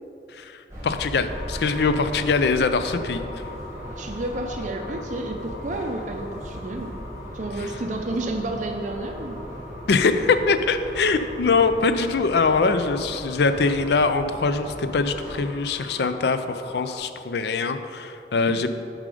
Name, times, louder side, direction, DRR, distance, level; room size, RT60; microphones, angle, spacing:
sound 1, 0.7-15.4, equal, 15° right, 1.6 m, -38 dB
voice 1, 0.8-3.2 9.9-18.7, left 4 dB, 65° left, 10 dB, 0.4 m, -22 dB
sound 2, 1.2-17.0, left 2 dB, 50° left, 0.9 m, -42 dB
voice 2, 4.0-7.0 7.3-9.5 18.4-18.7, right 2 dB, 45° right, 4 dB, 0.5 m, -31 dB
7.5 x 4.8 x 4.9 m, 2.6 s
head